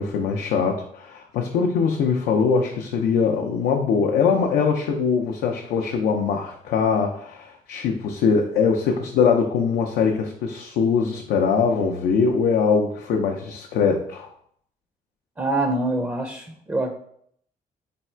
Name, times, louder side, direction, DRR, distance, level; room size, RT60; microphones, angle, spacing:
voice 1, 0.0-14.3, left 5 dB, 85° left, 1 dB, 0.5 m, -22 dB
voice 2, 15.4-16.9, right 2 dB, 15° right, 3 dB, 0.5 m, -25 dB
3.4 x 2.3 x 4.3 m, 0.65 s
cardioid pair, 90°, 16 cm